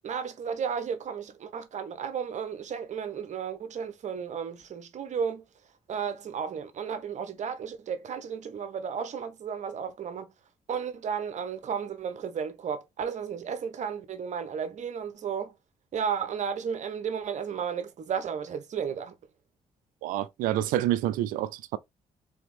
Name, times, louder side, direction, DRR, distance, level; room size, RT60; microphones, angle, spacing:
voice 1, 0.0-5.4 5.9-10.3 10.7-15.5 15.9-19.2, right 7 dB, 60° right, 1.0 m, -33 dB
voice 2, 20.0-21.8, right 13 dB, 80° right, 0.4 m, -28 dB
3.5 x 3.4 x 3.6 m
supercardioid pair, 55°, 14 cm